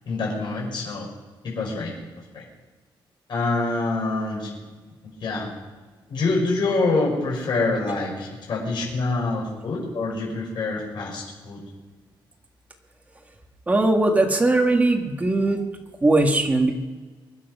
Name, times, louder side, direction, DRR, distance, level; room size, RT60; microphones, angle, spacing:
voice 1, 0.1-1.1 1.4-1.9 2.3-2.4 3.3-4.5 5.2-5.5 6.1-11.6, left 3 dB, 60° left, -2 dB, 5.8 m, -26 dB
voice 2, 13.7-15.6 16.0-16.7, right 2 dB, 15° right, 2 dB, 1.7 m, -19 dB
24.0 x 10.5 x 5.5 m, 1.4 s
wide cardioid pair, 170°, 9 cm